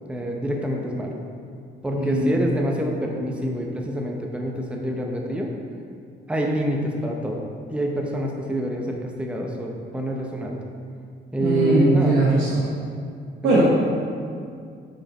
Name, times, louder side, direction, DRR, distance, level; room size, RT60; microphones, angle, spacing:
voice 1, 0.1-1.1 1.8-5.5 6.3-7.4 7.7-10.6 11.3-12.3 13.5-13.6, equal, 5° right, 0 dB, 0.7 m, -26 dB
voice 2, 1.9-2.4 11.4-12.6 13.4-13.6, right 2 dB, 85° right, -6 dB, 1.0 m, -20 dB
5.2 x 4.8 x 4.2 m, 2.3 s
cardioid pair, 90°, 20 cm